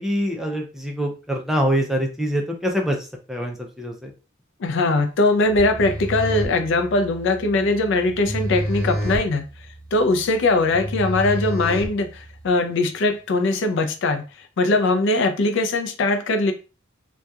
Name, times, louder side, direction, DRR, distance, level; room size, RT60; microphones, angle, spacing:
voice 1, 0.0-4.1, equal, ahead, 0.4 m, -25 dB
voice 2, 4.6-9.4 9.9-16.5, left 2 dB, 65° left, 0.4 m, -21 dB
sound 1, 5.5-12.4, equal, 20° right, 1.4 m, -29 dB
2.7 x 2.2 x 2.2 m
head